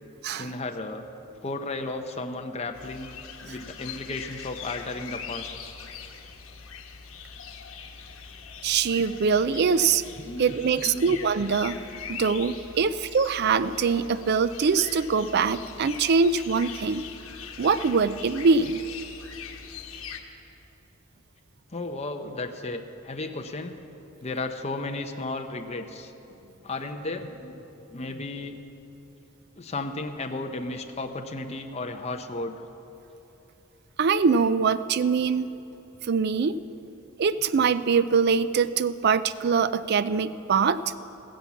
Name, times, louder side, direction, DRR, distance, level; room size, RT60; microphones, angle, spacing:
voice 1, 0.4-1.1 1.4-3.1 3.4-5.5 10.2-10.6 10.8-11.2 21.7-23.8 24.2-26.1 26.6-27.6 27.9-28.6 29.6-32.6, left 2 dB, 30° left, 5 dB, 0.7 m, -34 dB
sound 1, 2.7-20.2, left 6 dB, 85° left, 1.2 m, -41 dB
voice 2, 8.6-10.0 10.4-11.8 12.1-17.0 17.6-18.8 34.0-35.5 36.1-36.6 37.2-40.8, right 5 dB, 50° right, 14 dB, 0.4 m, -23 dB
15.5 x 10.5 x 7.0 m, 3.0 s
head